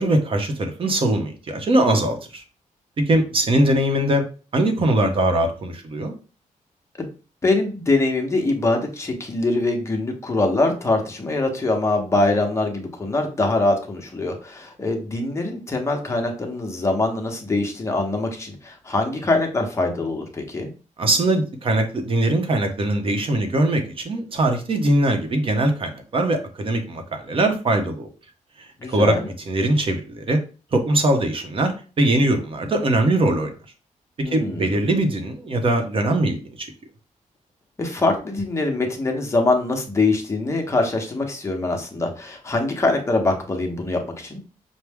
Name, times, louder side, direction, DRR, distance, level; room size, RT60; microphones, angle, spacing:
voice 1, 0.0-2.4 3.0-4.2 4.5-6.1 21.0-28.1 28.9-29.2 29.5-30.4 30.7-33.5 34.2-36.7, right 1 dB, 40° right, 5 dB, 0.8 m, -21 dB
voice 2, 7.4-20.7 28.8-29.3 34.2-34.7 37.8-44.4, left 2 dB, 20° left, 2 dB, 0.9 m, -23 dB
6.0 x 2.1 x 3.5 m, 0.36 s
wide cardioid pair, 155°, 14 cm